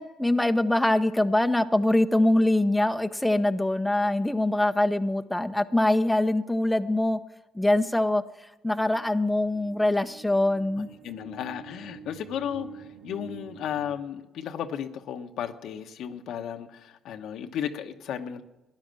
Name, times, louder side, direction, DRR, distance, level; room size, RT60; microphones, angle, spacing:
voice 1, 0.0-7.2 7.5-8.2 8.6-10.9, left 1 dB, 5° left, 8 dB, 0.8 m, -23 dB
sound 1, 8.8-14.0, right 6 dB, 90° right, 2.0 m, -47 dB
voice 2, 11.0-18.4, left 9 dB, 75° left, 7 dB, 1.0 m, -34 dB
13.0 x 10.5 x 7.6 m, 1.0 s
supercardioid pair, 75°, 0 cm